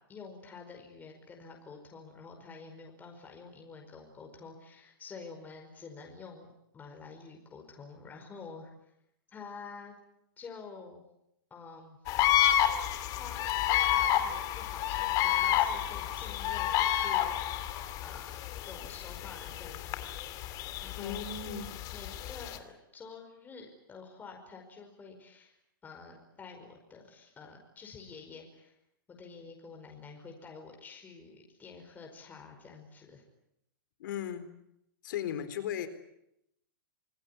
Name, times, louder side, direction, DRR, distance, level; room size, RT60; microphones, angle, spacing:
voice 1, 0.1-8.9 9.3-9.9 10.4-11.0 11.5-12.0 12.9-13.6 13.9-18.3 18.6-20.1 20.8-21.2 21.9-25.6 25.8-28.8 29.1-33.2, left 4 dB, 15° left, 2 dB, 5.1 m, -49 dB
sound 1, 12.1-22.6, left 12 dB, 30° left, 2.6 m, -30 dB
voice 2, 21.0-21.8 34.0-34.6 35.0-35.9, left 8 dB, 60° left, 11 dB, 4.1 m, -37 dB
26.5 x 19.5 x 9.8 m, 0.81 s
hypercardioid pair, 145°, 12 cm